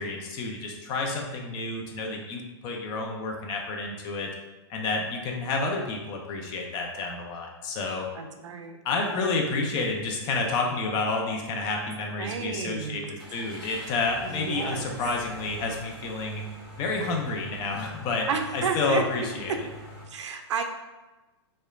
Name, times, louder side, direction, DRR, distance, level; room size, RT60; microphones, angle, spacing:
voice 1, 0.0-4.3 4.7-8.1 8.8-16.4 16.8-18.3 18.5-19.5, left 3 dB, 30° left, 1 dB, 0.4 m, -30 dB
voice 2, 8.1-8.8 9.0-9.3 12.2-13.1 14.2-15.0 18.3-19.0 20.1-20.6, right 5 dB, 80° right, 5 dB, 0.4 m, -32 dB
sound 1, 10.1-10.2 10.6-10.7 13.2-20.0, equal, ahead, 1.2 m, -43 dB
2.8 x 2.1 x 2.4 m, 1.1 s
hypercardioid pair, 130°, 15 cm